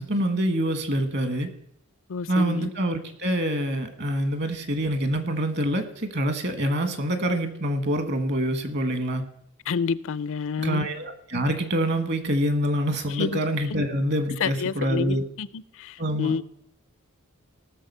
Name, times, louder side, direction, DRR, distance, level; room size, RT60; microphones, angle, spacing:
voice 1, 0.0-1.5 2.3-9.2 10.6-15.2 16.0-16.3, right 1 dB, 50° right, 1.6 m, -26 dB
voice 2, 2.1-2.7 9.7-10.9 13.1-13.4 14.4-16.4, left 5 dB, 65° left, 0.5 m, -29 dB
18.0 x 6.6 x 5.6 m
head